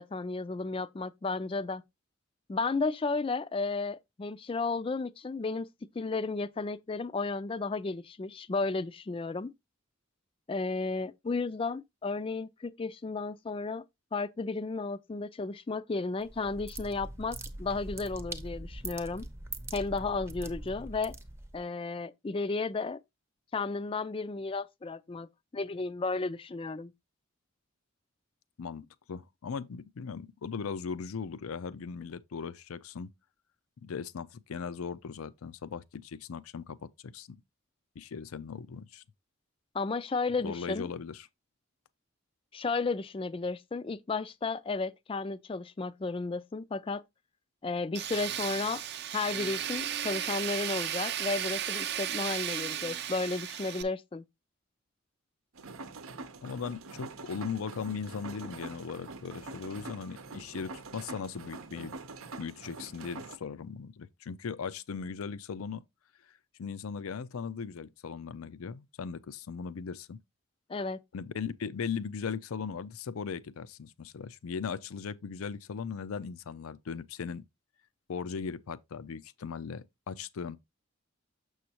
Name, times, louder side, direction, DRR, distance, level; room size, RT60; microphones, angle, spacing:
voice 1, 0.0-1.8 2.5-5.7 5.9-9.5 10.5-13.8 14.1-19.3 19.7-21.1 21.5-23.0 23.5-26.9 39.7-40.9 42.5-47.0 47.6-48.8 49.1-54.2 70.7-71.0, left 3 dB, 25° left, 0.3 m, -33 dB
sound 1, 16.2-21.6, right 2 dB, 10° right, 0.6 m, -42 dB
voice 2, 28.6-33.1 33.8-37.4 38.0-39.0 40.4-41.3 56.4-61.9 62.4-65.8 66.6-70.2 71.1-77.4 78.1-80.6, left 6 dB, 90° left, 0.5 m, -38 dB
Tools, 47.9-53.8, right 10 dB, 50° right, 0.6 m, -35 dB
sound 2, 55.5-63.4, right 3 dB, 85° right, 0.8 m, -45 dB
7.0 x 6.3 x 2.8 m
head